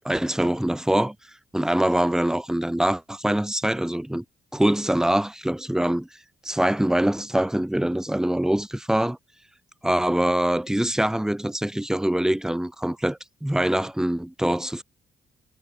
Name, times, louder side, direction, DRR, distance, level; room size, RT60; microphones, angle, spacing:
voice 1, 0.0-1.1 1.5-4.2 4.5-6.1 6.4-9.2 9.8-14.8, right 1 dB, 5° right, 0.9 m, -24 dB
cardioid pair, 90°, 20 cm